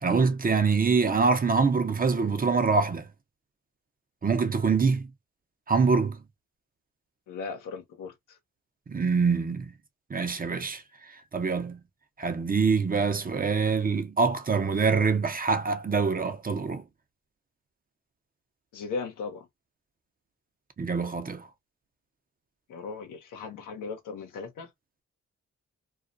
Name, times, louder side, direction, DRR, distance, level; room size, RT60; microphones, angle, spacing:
voice 1, 0.0-3.1 4.2-5.1 5.7-6.2 8.9-9.7 10.1-10.8 11.3-11.8 12.2-16.8 20.8-21.5, right 5 dB, 30° right, 0.6 m, -25 dB
voice 2, 7.3-8.4 18.7-19.5 22.7-24.7, left 4 dB, 90° left, 0.9 m, -37 dB
2.4 x 2.1 x 2.4 m
cardioid pair, 60°, 30 cm